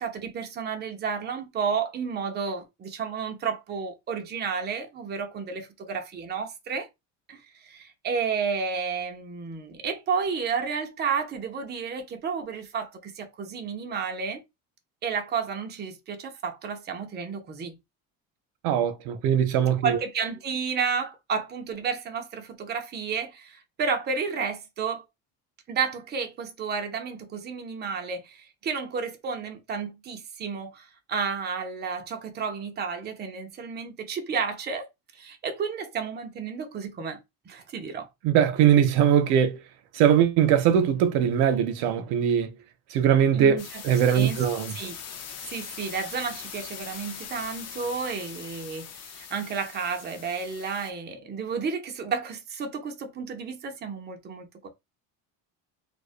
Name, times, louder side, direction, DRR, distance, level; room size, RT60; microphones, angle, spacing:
voice 1, 0.0-6.9 7.3-14.4 15.0-17.8 19.8-25.0 25.7-34.9 35.1-38.1 43.3-45.0 45.5-54.7, right 5 dB, 25° right, 0.5 m, -32 dB
voice 2, 18.6-20.0 38.2-39.6 39.9-42.5 42.9-44.7, right 9 dB, 75° right, 0.5 m, -21 dB
sound 1, 43.6-50.9, left 7 dB, 40° left, 0.5 m, -41 dB
2.4 x 2.1 x 2.4 m
cardioid pair, 115°, 38 cm